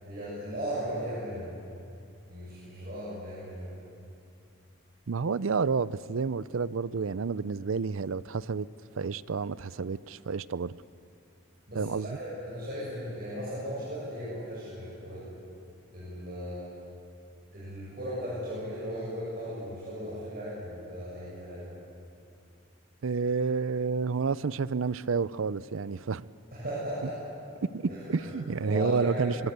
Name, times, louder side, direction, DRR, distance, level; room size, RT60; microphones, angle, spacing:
voice 1, 0.0-1.5 2.3-3.7 11.7-15.3 15.9-16.7 17.5-21.8 26.5-27.1 27.9-28.3 28.6-29.3, equal, 45° right, -9 dB, 7.8 m, -37 dB
voice 2, 5.1-8.7 9.0-10.8 11.8-12.1 23.0-26.2 27.6-29.4, right 5 dB, 75° right, 18 dB, 0.5 m, -30 dB
24.0 x 23.5 x 8.2 m, 2.6 s
head